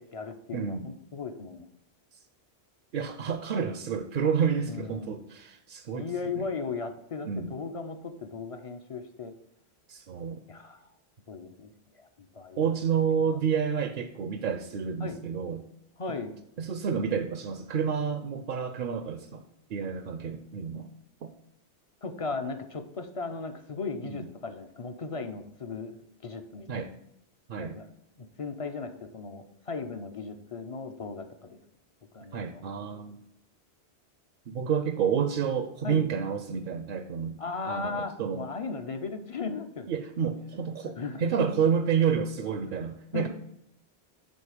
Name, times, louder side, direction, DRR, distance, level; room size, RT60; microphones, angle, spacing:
voice 1, 0.0-1.7 4.7-5.2 5.9-9.3 10.5-10.9 11.3-13.4 15.0-15.2 16.0-16.4 22.0-26.7 27.6-27.9 28.2-31.6 32.1-32.6 35.8-36.0 37.4-40.0 41.0-41.6 43.1-43.3, left 4 dB, 40° left, 7 dB, 0.5 m, -37 dB
voice 2, 0.5-0.9 2.9-6.5 7.2-7.5 9.9-10.4 12.6-15.6 16.1-16.2 16.6-19.4 19.7-20.9 21.2-21.3 24.1-24.3 26.7-26.9 27.5-27.8 32.3-33.2 34.5-37.4 37.7-38.5 39.9-43.3, right 7 dB, 60° right, 8 dB, 0.6 m, -29 dB
7.8 x 3.8 x 4.9 m, 0.78 s
omnidirectional pair, 1.1 m